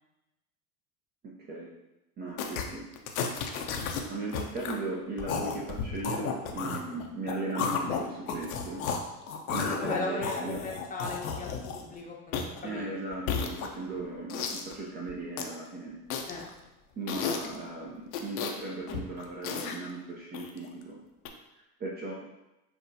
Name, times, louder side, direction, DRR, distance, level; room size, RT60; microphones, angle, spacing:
voice 1, 1.2-1.7 2.2-2.9 4.1-8.8 9.5-10.6 11.8-11.9 12.6-16.0 17.0-21.0 21.6-22.1, right 3 dB, 20° right, -3 dB, 0.5 m, -37 dB
sound 1, 2.4-2.7 2.9-4.0 4.3-4.8 5.2-9.0 9.3-11.9 12.3-12.6 13.1-13.9 14.3-14.7 15.1-15.5 16.1-16.5 17.1-17.6 18.1-18.6 18.9-19.8 20.3-20.7 21.3-21.4, left 6 dB, 65° left, 0.6 m, -33 dB
voice 2, 9.8-12.9 16.3-16.5, left 3 dB, 20° left, -3 dB, 0.7 m, -38 dB
5.8 x 2.2 x 2.6 m, 0.96 s
figure-of-eight pair, 80°, 45 cm